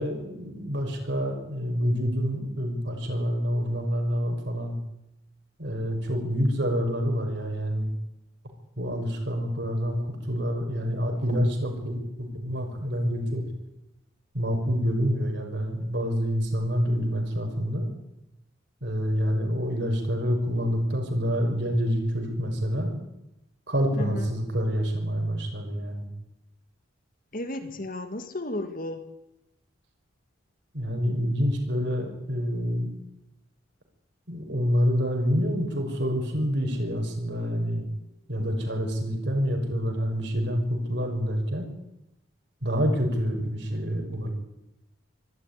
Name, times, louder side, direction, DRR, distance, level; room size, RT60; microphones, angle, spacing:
voice 1, 0.0-4.8 5.6-7.9 8.8-13.5 14.3-17.9 18.8-23.0 23.7-26.1 27.6-27.7 30.7-32.9 34.3-37.9 38.3-41.7 42.6-44.3, equal, 60° right, 3 dB, 5.8 m, -27 dB
voice 2, 24.0-24.3 27.3-29.1, left 1 dB, 45° left, 8 dB, 1.8 m, -33 dB
24.5 x 13.0 x 9.9 m, 0.90 s
head